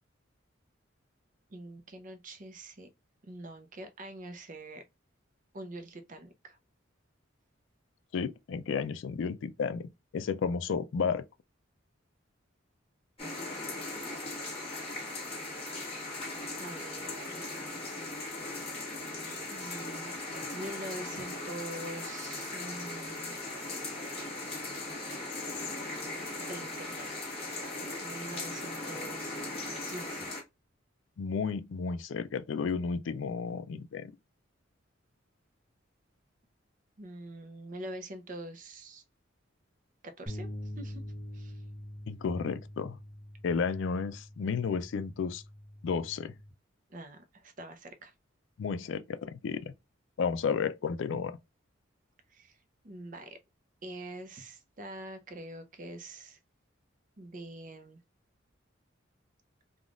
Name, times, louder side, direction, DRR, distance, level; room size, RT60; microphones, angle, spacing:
voice 1, 1.5-2.9 3.2-4.8 5.5-6.6 16.6-17.4 19.5-20.2 20.5-23.3 26.4-27.1 28.0-29.4 29.9-30.3 37.0-39.0 40.2-40.5 40.8-41.0 41.3-41.6 46.9-48.1 52.3-52.6 52.8-53.4 53.8-56.4 57.2-58.0, right 1 dB, 40° right, 0.5 m, -44 dB
voice 2, 8.1-11.2 31.2-34.1 42.1-43.0 43.4-45.4 45.8-46.3 48.6-49.7 50.2-51.4, left 5 dB, 70° left, 0.4 m, -32 dB
sound 1, 13.2-30.4, left 2 dB, 30° left, 1.2 m, -38 dB
sound 2, 40.3-46.5, left 1 dB, 5° left, 0.7 m, -44 dB
3.4 x 2.3 x 2.4 m
head